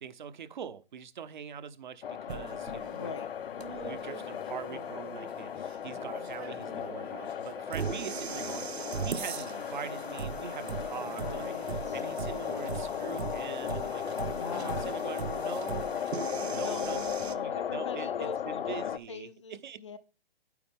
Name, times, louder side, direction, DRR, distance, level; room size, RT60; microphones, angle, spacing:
voice 1, 0.0-3.1 3.8-11.5 11.9-14.2 14.5-15.9 16.5-19.3 19.6-19.8, right 8 dB, 50° right, 0.9 m, -43 dB
sound 1, 2.0-19.0, left 9 dB, 65° left, 0.8 m, -36 dB
sound 2, 2.3-17.3, right 7 dB, 90° right, 1.0 m, -40 dB
voice 2, 2.9-3.3 10.8-12.0 14.2-14.9 16.6-20.0, left 6 dB, 30° left, 0.5 m, -42 dB
9.6 x 8.6 x 3.6 m
hypercardioid pair, 165°, 31 cm